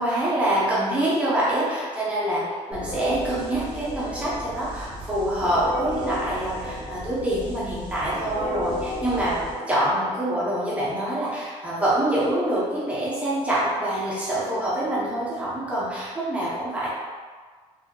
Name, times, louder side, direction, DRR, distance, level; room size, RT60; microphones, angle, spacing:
voice 1, 0.0-2.4 2.7-16.9, right 1 dB, 10° right, -8 dB, 0.8 m, -25 dB
sound 1, 2.7-10.4, right 1 dB, 35° left, 1.4 m, -34 dB
4.0 x 2.4 x 2.9 m, 1.5 s
cardioid pair, 170°, 13 cm